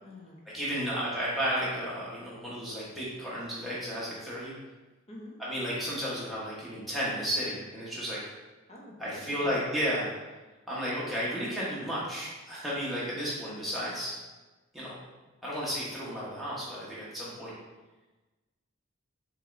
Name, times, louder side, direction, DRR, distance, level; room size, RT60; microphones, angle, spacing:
voice 1, 0.0-0.8 5.1-5.4 8.7-9.5, left 1 dB, 30° left, -2 dB, 0.7 m, -47 dB
voice 2, 0.5-4.5 5.4-8.2 9.0-10.1 10.7-14.1 14.7-15.0 15.4-17.5, equal, ahead, -9 dB, 1.1 m, -33 dB
5.3 x 3.1 x 2.6 m, 1.2 s
head